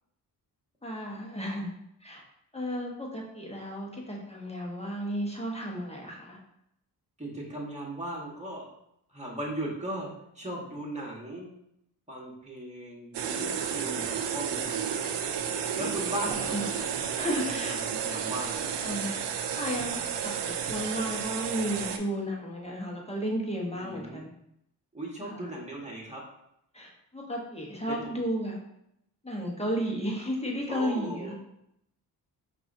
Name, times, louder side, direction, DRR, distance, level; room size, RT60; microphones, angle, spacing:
voice 1, 0.8-1.7 2.0-2.2 2.5-6.4 15.8-15.9 16.2-16.7 17.1-17.8 18.8-19.2 19.5-24.3 25.2-25.5 26.7-28.6 29.2-31.3, equal, 15° left, -2 dB, 1.1 m, -33 dB
voice 2, 7.2-8.7 9.1-10.1 10.3-11.5 12.1-14.8 15.8-16.9 17.2-18.6 23.8-24.2 24.9-26.2 27.9-28.2 30.7-31.3, right 1 dB, 15° right, -4 dB, 1.5 m, -38 dB
sound 1, 13.1-22.0, right 7 dB, 85° right, 0.5 m, -32 dB
5.4 x 2.6 x 2.7 m, 0.77 s
cardioid pair, 55°, 41 cm